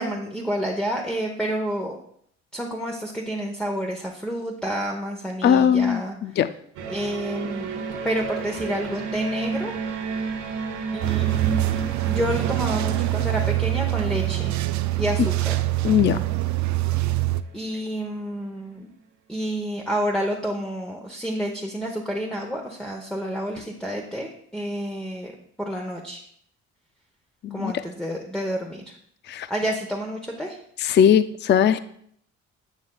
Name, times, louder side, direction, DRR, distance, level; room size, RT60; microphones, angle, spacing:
voice 1, 0.0-2.0 2.5-6.1 6.9-7.7 8.0-9.7 10.9-14.5 15.0-15.6 17.5-18.9 19.3-26.2 27.5-28.8 29.5-30.6, equal, 5° left, 0 dB, 0.9 m, -29 dB
voice 2, 5.4-6.5 15.8-16.2 27.4-27.7 29.3-29.5 30.8-31.8, left 8 dB, 40° left, 12 dB, 0.4 m, -19 dB
sound 1, 6.8-18.1, right 5 dB, 85° right, 1.3 m, -34 dB
sound 2, 11.0-17.4, right 17 dB, 70° right, 0.5 m, -24 dB
9.4 x 6.3 x 2.3 m, 0.65 s
cardioid pair, 90°, 30 cm